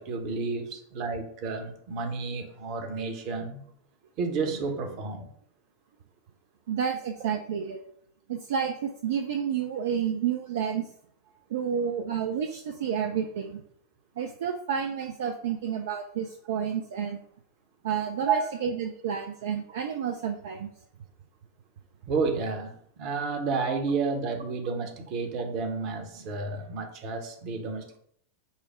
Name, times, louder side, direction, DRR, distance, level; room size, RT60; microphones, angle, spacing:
voice 1, 0.0-3.6 4.2-5.3 18.3-18.5 22.1-28.0, right 4 dB, 40° right, 4 dB, 0.9 m, -31 dB
voice 2, 6.7-7.8 8.3-10.9 11.5-13.6 14.2-17.2 17.8-20.7, right 8 dB, 55° right, 4 dB, 0.4 m, -30 dB
5.5 x 2.0 x 4.7 m, 0.67 s
figure-of-eight pair, 90°, 0 cm